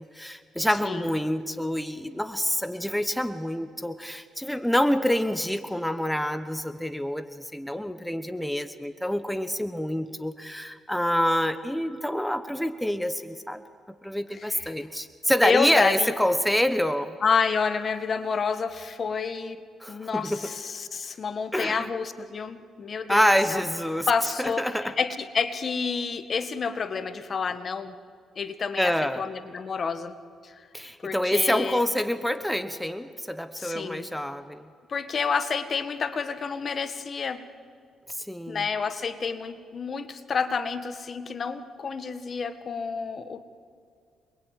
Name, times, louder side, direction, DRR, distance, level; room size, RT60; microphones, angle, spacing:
voice 1, 0.0-13.6 14.0-17.1 19.8-20.5 21.5-21.9 23.1-24.9 28.8-29.2 30.7-34.6 38.1-38.6, equal, 5° left, 10 dB, 1.1 m, -27 dB
voice 2, 14.3-14.7 15.4-16.1 17.2-19.6 19.9-23.2 23.5-23.6 24.1-27.9 28.4-30.1 30.4-30.5 31.0-31.8 33.6-34.1 34.9-37.4 38.5-43.4, left 5 dB, 45° left, 11 dB, 1.7 m, -29 dB
27.5 x 22.0 x 9.2 m, 2.2 s
cardioid pair, 90°, 0 cm